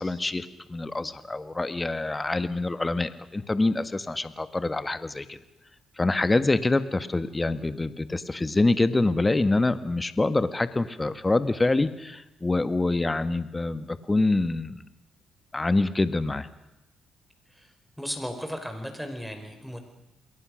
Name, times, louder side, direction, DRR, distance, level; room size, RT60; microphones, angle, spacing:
voice 1, 0.0-5.4 6.0-14.8 15.5-16.5, left 2 dB, 20° left, 12 dB, 1.6 m, -26 dB
voice 2, 18.0-19.8, equal, ahead, 5 dB, 4.8 m, -35 dB
28.5 x 21.5 x 6.4 m, 0.96 s
cardioid pair, 90°, 0 cm